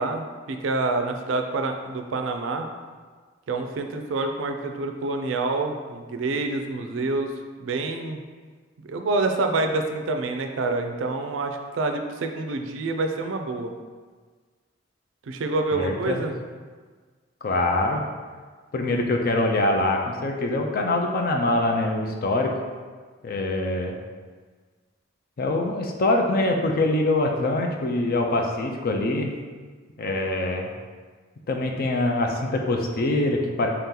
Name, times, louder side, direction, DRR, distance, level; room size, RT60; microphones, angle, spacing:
voice 1, 0.0-2.7 3.5-7.3 7.6-8.2 8.8-13.7 15.3-16.3, right 3 dB, 70° right, 5 dB, 0.4 m, -27 dB
voice 2, 15.7-16.2 17.4-18.0 18.7-22.5 23.2-24.0 25.4-29.3 30.0-30.7 31.5-33.7, left 2 dB, 50° left, 2 dB, 0.4 m, -24 dB
3.5 x 2.8 x 3.7 m, 1.5 s
head